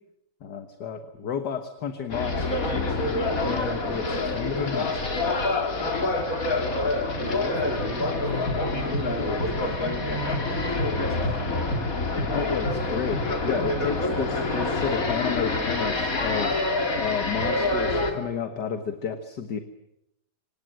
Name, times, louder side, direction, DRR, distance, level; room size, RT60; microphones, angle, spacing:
voice 1, 0.4-5.1 12.3-16.6 17.0-19.6, left 7 dB, 60° left, 8 dB, 2.0 m, -32 dB
sound 1, 2.1-18.1, left 2 dB, 45° left, 3.0 m, -26 dB
voice 2, 5.8-6.3 6.8-11.7 12.0-12.5, right 1 dB, 5° right, 5 dB, 3.2 m, -39 dB
27.5 x 25.5 x 7.8 m, 0.82 s
omnidirectional pair, 2.2 m